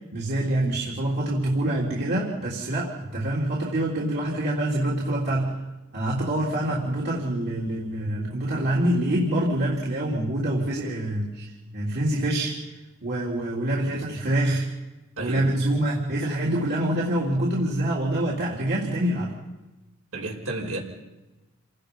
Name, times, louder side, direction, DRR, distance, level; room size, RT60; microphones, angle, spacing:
voice 1, 0.1-5.6 5.9-11.5 11.7-12.6 13.0-14.7 15.2-19.3, right 1 dB, 50° right, -5 dB, 3.5 m, -25 dB
voice 2, 15.2-15.5 20.1-20.8, right 2 dB, 70° right, -1 dB, 5.3 m, -31 dB
29.0 x 19.0 x 5.5 m, 1.1 s
head